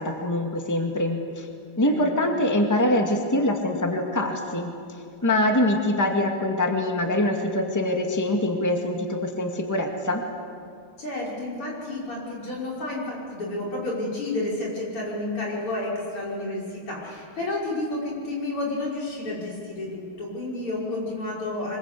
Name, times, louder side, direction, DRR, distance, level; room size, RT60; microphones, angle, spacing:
voice 1, 0.0-1.5 1.8-4.7 5.2-10.2, left 1 dB, 10° left, 2 dB, 2.0 m, -24 dB
voice 2, 1.8-2.2 11.0-21.8, left 2 dB, 85° left, -4 dB, 6.7 m, -31 dB
25.0 x 22.0 x 8.4 m, 2.2 s
omnidirectional pair, 2.4 m